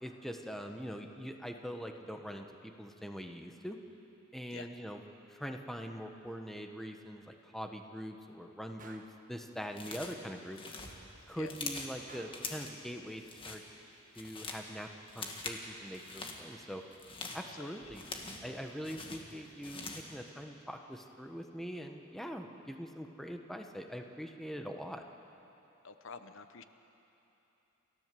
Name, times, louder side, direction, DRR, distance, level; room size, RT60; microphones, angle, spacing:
voice 1, 0.0-3.8 4.3-5.0 5.3-9.0 9.3-10.6 11.3-13.6 14.1-14.9 15.1-16.8 17.3-18.1 18.4-25.0, equal, ahead, 4 dB, 1.1 m, -43 dB
Gunshot gunfire, 8.8-9.2 12.1-12.6, right 4 dB, 40° right, 1.4 m, -54 dB
sound 1, 9.7-10.2 10.5-12.0 12.3-12.8 13.2-13.6 14.0-14.7 15.1-15.6 15.9-16.4 16.9-18.5 18.8-20.1, left 3 dB, 25° left, 1.8 m, -43 dB
voice 2, 17.6-17.9 25.8-26.6, left 5 dB, 65° left, 9 dB, 0.9 m, -48 dB
28.5 x 14.5 x 7.6 m, 3.0 s
head